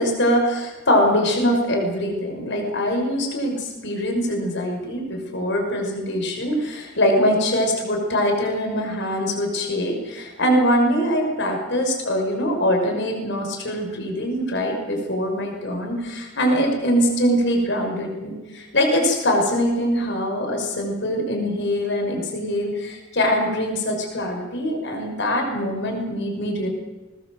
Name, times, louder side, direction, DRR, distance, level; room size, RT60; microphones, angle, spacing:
voice 1, 0.0-26.7, equal, 60° left, 3 dB, 5.8 m, -23 dB
21.5 x 20.0 x 7.9 m, 1.2 s
head